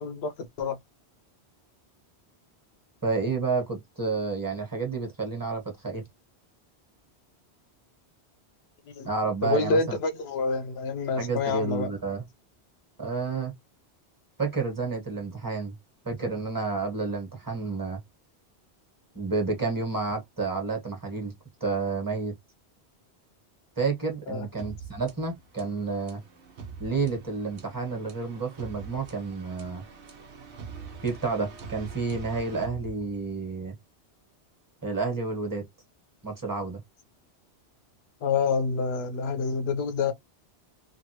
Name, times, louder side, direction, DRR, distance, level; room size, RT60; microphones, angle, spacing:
voice 1, 0.0-0.8 8.9-9.1 9.4-11.9 24.3-24.5 38.2-40.1, left 4 dB, 70° left, 0.9 m, -27 dB
voice 2, 3.0-6.0 9.0-10.0 11.2-12.2 13.0-13.5 14.4-15.7 16.0-18.0 19.1-21.3 21.6-22.3 23.8-26.2 26.8-29.8 31.0-33.7 34.8-35.6 36.2-36.8, right 4 dB, 20° right, 1.3 m, -30 dB
sound 1, 24.6-33.5, right 5 dB, 85° right, 1.1 m, -44 dB
3.1 x 2.5 x 2.8 m
omnidirectional pair, 1.1 m